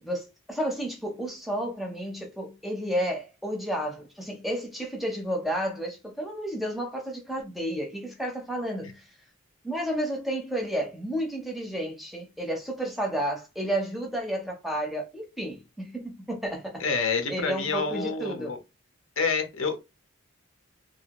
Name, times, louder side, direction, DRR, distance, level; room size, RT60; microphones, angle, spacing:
voice 1, 0.0-9.0 9.6-16.8 17.3-18.5, equal, ahead, 0.6 m, -31 dB
voice 2, 16.8-18.6 19.2-19.8, left 4 dB, 80° left, 0.8 m, -28 dB
2.7 x 2.7 x 2.9 m
head